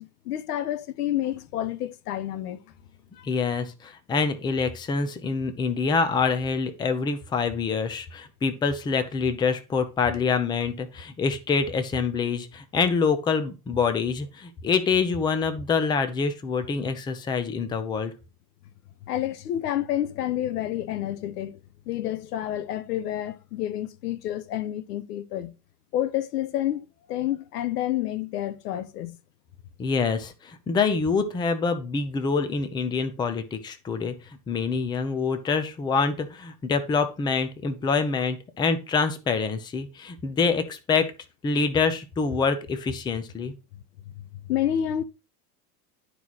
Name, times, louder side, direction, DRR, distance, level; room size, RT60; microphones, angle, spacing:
voice 1, 0.0-2.6 3.2-3.3 19.1-21.6 21.9-25.5 25.9-29.2 44.5-45.0, left 12 dB, 90° left, 1.0 m, -29 dB
voice 2, 3.2-18.1 29.8-34.1 34.5-41.1 41.4-43.5, left 5 dB, 10° left, 0.5 m, -26 dB
11.0 x 4.7 x 4.1 m
supercardioid pair, 150°, 45 cm